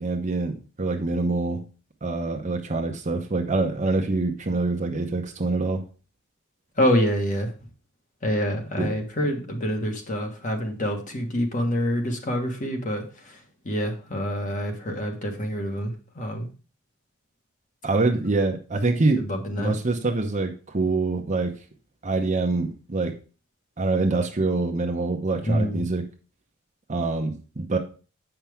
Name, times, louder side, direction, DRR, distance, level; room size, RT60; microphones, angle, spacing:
voice 1, 0.0-1.6 2.0-5.8 8.8-9.0 17.8-19.3 19.6-21.5 22.0-23.1 23.8-26.0 26.9-27.8, right 3 dB, 35° right, 3 dB, 0.8 m, -25 dB
voice 2, 6.8-7.5 8.2-13.4 13.6-16.5 19.2-19.7 25.4-25.9, equal, 40° left, 3 dB, 1.5 m, -26 dB
8.1 x 5.8 x 3.5 m, 0.36 s
head